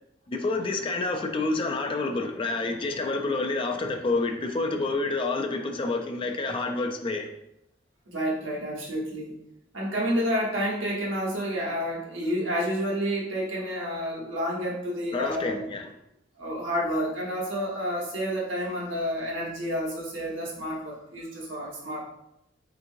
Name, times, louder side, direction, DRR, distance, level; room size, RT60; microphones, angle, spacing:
voice 1, 0.3-7.3 15.1-15.9, left 3 dB, 30° left, 4 dB, 0.3 m, -28 dB
voice 2, 8.1-9.4 9.7-15.6 16.4-22.0, equal, 90° right, -3 dB, 1.0 m, -29 dB
3.5 x 2.9 x 2.6 m, 0.81 s
head